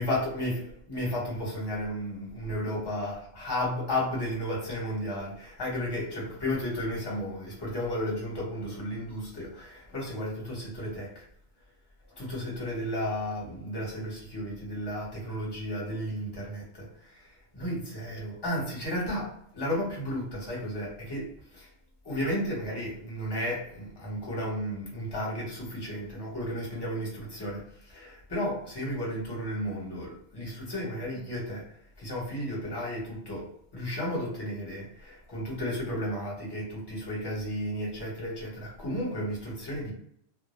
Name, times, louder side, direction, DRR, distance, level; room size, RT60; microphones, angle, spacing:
voice 1, 0.0-11.2 12.1-21.3 21.5-21.7 22.0-39.9, equal, 25° left, -5 dB, 0.8 m, -33 dB
2.1 x 2.0 x 2.9 m, 0.68 s
omnidirectional pair, 1.1 m